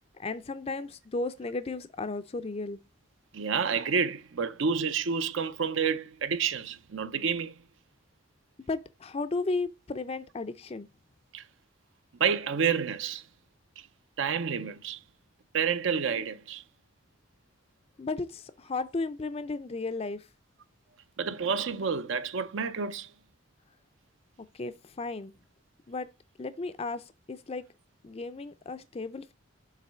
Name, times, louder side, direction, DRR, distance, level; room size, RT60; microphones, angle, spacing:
voice 1, 0.2-2.8 8.7-10.9 18.0-20.3 24.5-25.3 25.9-26.1 26.4-27.6 28.0-29.3, left 3 dB, 30° left, 0.4 m, -34 dB
voice 2, 3.3-7.5 11.3-11.4 12.2-13.2 14.2-15.0 15.5-16.6 21.2-23.1, right 6 dB, 65° right, 0.6 m, -29 dB
7.4 x 3.1 x 5.4 m
head